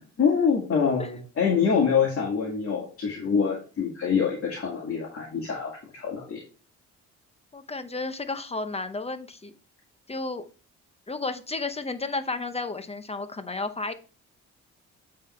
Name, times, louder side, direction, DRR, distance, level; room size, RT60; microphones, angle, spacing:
voice 1, 0.2-6.4, left 6 dB, 45° left, -2 dB, 2.0 m, -25 dB
voice 2, 7.5-9.5 10.1-10.4 11.1-13.9, left 3 dB, 20° left, 10 dB, 0.7 m, -32 dB
8.7 x 3.8 x 4.3 m, 0.37 s
cardioid pair, 90°, 30 cm